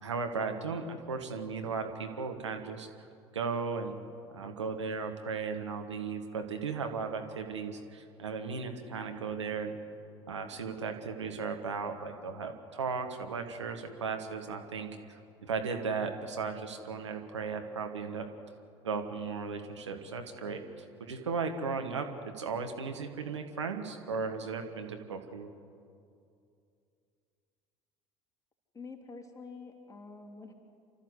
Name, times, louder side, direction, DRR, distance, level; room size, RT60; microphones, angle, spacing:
voice 1, 0.0-2.9 3.3-4.0 4.3-9.8 10.3-18.2 18.8-25.5, right 5 dB, 80° right, 5 dB, 1.6 m, -36 dB
voice 2, 28.7-30.5, left 4 dB, 20° left, 3 dB, 3.3 m, -47 dB
28.5 x 13.5 x 8.1 m, 2.5 s
figure-of-eight pair, 65°, 15 cm